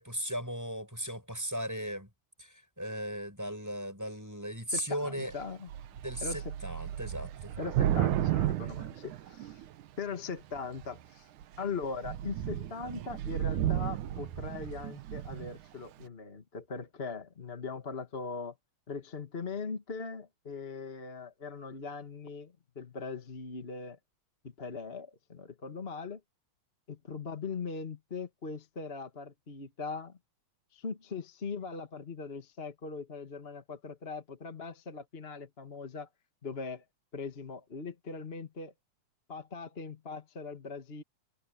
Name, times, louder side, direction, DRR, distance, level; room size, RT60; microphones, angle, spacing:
voice 1, 0.0-2.1 2.4-5.3 6.0-7.5, equal, 5° right, 7.7 m, -37 dB
voice 2, 4.7-5.7 6.2-6.5 7.6-9.6 10.0-11.3 11.6-18.5 18.9-24.0 24.4-26.2 26.9-30.2 30.7-36.1 36.4-36.8 37.1-38.7 39.3-41.0, left 4 dB, 25° left, 1.4 m, -40 dB
Thunder / Rain, 5.3-5.4 5.7-9.8 10.5-11.0 11.4-11.6 11.8-15.6, right 12 dB, 80° right, 2.6 m, -33 dB
omnidirectional pair, 3.4 m